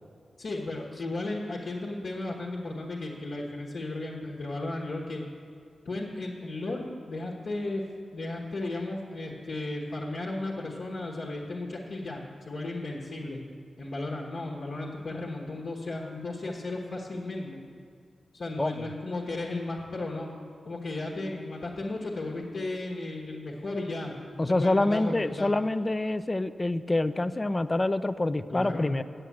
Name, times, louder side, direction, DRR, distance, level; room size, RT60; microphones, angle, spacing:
voice 1, 0.4-5.2 5.8-7.8 8.1-13.4 13.8-17.6 18.3-20.3 20.6-25.5 28.5-28.9, left 2 dB, 65° left, -3 dB, 1.3 m, -35 dB
voice 2, 18.6-18.9 24.4-29.0, left 2 dB, 25° left, 13 dB, 0.4 m, -26 dB
7.7 x 7.5 x 8.3 m, 2.2 s
cardioid pair, 65°, 0 cm